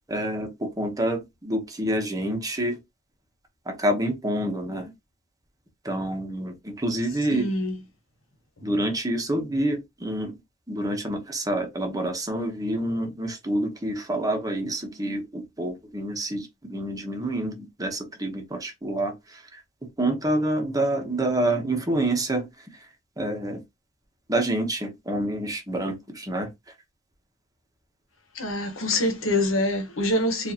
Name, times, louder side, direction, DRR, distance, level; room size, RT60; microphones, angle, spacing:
voice 1, 0.1-2.8 3.7-4.9 5.8-7.5 8.6-10.3 10.7-19.6 20.0-22.4 23.2-23.6 24.3-26.5, right 1 dB, 20° right, 0.9 m, -27 dB
voice 2, 7.3-7.8 28.3-30.5, left 1 dB, 75° left, 1.2 m, -25 dB
4.6 x 2.6 x 2.8 m
head